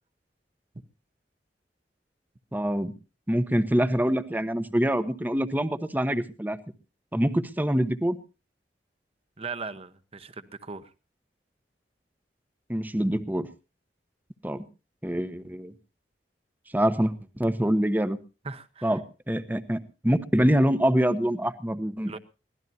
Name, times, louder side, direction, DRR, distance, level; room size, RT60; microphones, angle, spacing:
voice 1, 2.5-2.9 3.3-6.6 7.1-8.2 12.7-13.5 14.4-14.6 15.0-15.7 16.7-18.2 18.8-22.2, equal, 10° right, 0.9 m, -25 dB
voice 2, 9.4-10.8 18.4-19.0 22.0-22.2, right 4 dB, 35° right, 1.0 m, -38 dB
23.0 x 17.0 x 2.7 m
head